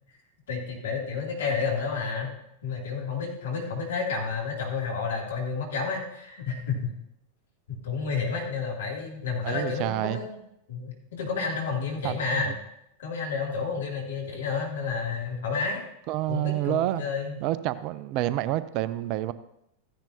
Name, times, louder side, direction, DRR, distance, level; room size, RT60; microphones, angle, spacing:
voice 1, 0.5-2.3 2.6-6.9 7.7-10.4 10.7-12.5 13.0-15.8 16.3-17.4, left 5 dB, 60° left, -2 dB, 2.9 m, -30 dB
voice 2, 9.4-10.2 12.0-12.5 16.1-17.0 17.4-19.3, right 15 dB, 40° right, 15 dB, 0.5 m, -28 dB
14.5 x 10.5 x 2.9 m, 0.79 s
figure-of-eight pair, 90°, 0 cm